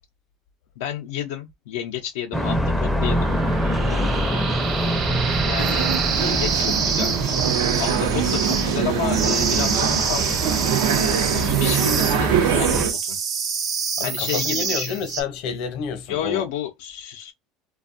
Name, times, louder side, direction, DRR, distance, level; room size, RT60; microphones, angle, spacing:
voice 1, 0.8-3.4 3.7-4.6 5.4-7.1 7.8-10.6 10.8-13.2 14.0-15.0 16.1-17.3, left 10 dB, 90° left, 0.5 m, -31 dB
sound 1, 2.3-12.9, equal, ahead, 0.4 m, -26 dB
sound 2, 3.0-15.2, right 6 dB, 45° right, 0.7 m, -26 dB
sound 3, 5.6-12.9, right 8 dB, 90° right, 0.6 m, -23 dB
voice 2, 14.0-16.4, left 6 dB, 60° left, 0.8 m, -29 dB
2.5 x 2.2 x 2.5 m
supercardioid pair, 130°, 0 cm